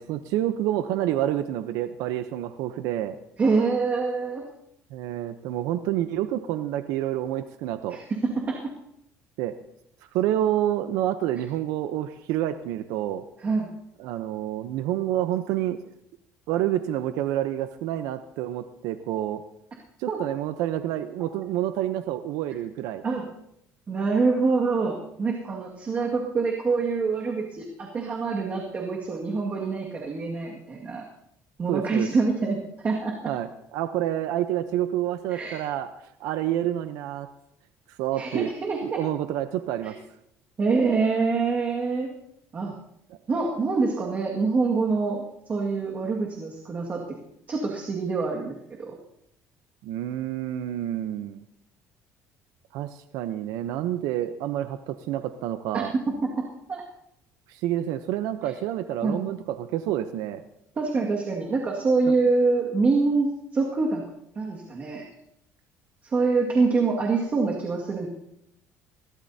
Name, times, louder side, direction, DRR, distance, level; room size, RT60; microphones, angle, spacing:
voice 1, 0.0-3.2 4.9-8.0 9.4-9.5 10.1-13.2 14.0-15.8 16.5-19.4 20.0-23.0 31.7-32.1 33.3-35.9 36.2-37.3 37.9-38.5 38.8-40.0 49.8-51.4 52.7-55.9 57.5-60.4 62.1-62.2, right 12 dB, 85° right, 10 dB, 0.7 m, -28 dB
voice 2, 3.4-4.4 7.9-8.6 13.4-13.7 20.1-20.2 23.0-23.2 23.9-31.1 31.6-33.1 35.3-35.6 38.2-39.0 39.8-39.9 40.6-42.1 42.5-42.7 43.3-45.2 45.5-47.0 47.5-48.9 55.7-55.8 56.7-56.8 58.5-58.6 59.0-59.2 60.8-63.3 63.5-64.0 64.4-65.0 66.0-68.1, right 4 dB, 30° right, -1 dB, 1.9 m, -25 dB
21.5 x 17.0 x 2.8 m, 0.77 s
cardioid pair, 145°, 6 cm